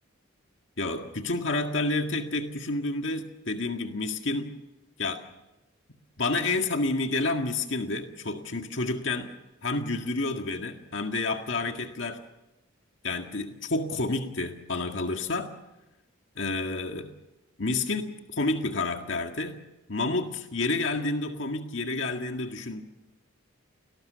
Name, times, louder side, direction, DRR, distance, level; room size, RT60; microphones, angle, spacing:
voice 1, 0.8-4.5 5.0-5.3 6.2-9.3 9.6-12.2 13.0-15.5 16.4-17.1 17.6-19.6 19.9-22.8, left 2 dB, 65° left, 4 dB, 1.9 m, -29 dB
29.5 x 19.5 x 6.9 m, 0.98 s
head